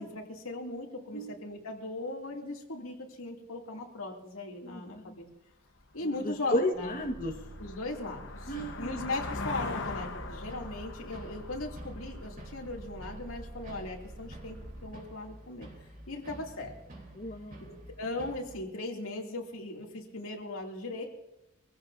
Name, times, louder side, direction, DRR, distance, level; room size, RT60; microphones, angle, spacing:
voice 1, 0.0-5.3 5.9-7.0 7.6-8.3 8.8-14.6 14.8-15.7 16.1-16.7 17.6-21.1, left 2 dB, 85° left, 0 dB, 2.6 m, -38 dB
voice 2, 4.6-5.2 6.2-7.3 8.5-8.9 17.1-17.6, left 1 dB, 40° left, 1 dB, 1.4 m, -33 dB
sound 1, 5.8-5.9 6.4-13.0, left 3 dB, 65° left, 1.1 m, -41 dB
sound 2, 6.7-15.0, right 1 dB, 85° right, 5.7 m, -47 dB
sound 3, 8.5-18.6, right 1 dB, 45° right, 3.3 m, -50 dB
24.0 x 15.5 x 2.7 m, 0.94 s
head